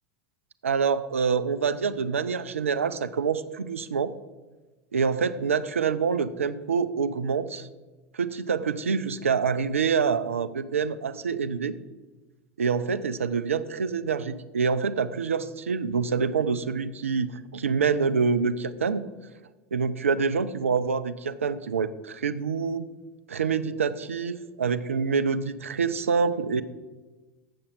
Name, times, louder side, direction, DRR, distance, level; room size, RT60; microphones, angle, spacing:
voice 1, 0.6-4.1 4.9-7.7 8.1-11.7 12.6-19.0 19.7-22.9 23.3-26.6, right 5 dB, 75° right, 14 dB, 0.4 m, -26 dB
7.8 x 7.0 x 5.2 m, 1.2 s
figure-of-eight pair, 80°, 7 cm